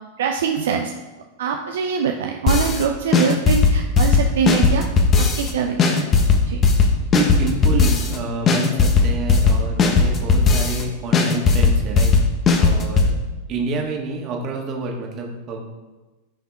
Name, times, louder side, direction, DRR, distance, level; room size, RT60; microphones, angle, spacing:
voice 1, 0.2-0.9 1.4-4.8 5.2-6.0 6.5-6.6, right 6 dB, 60° right, 3 dB, 0.6 m, -23 dB
sound 1, 2.5-2.8 3.1-5.5 5.8-8.2 8.5-10.8 11.1-13.1, left 4 dB, 25° left, 1.2 m, -16 dB
voice 2, 7.1-12.1 12.6-13.1 13.5-15.6, right 3 dB, 35° right, 1 dB, 1.9 m, -28 dB
14.5 x 5.7 x 3.6 m, 1.2 s
figure-of-eight pair, 90°, 0 cm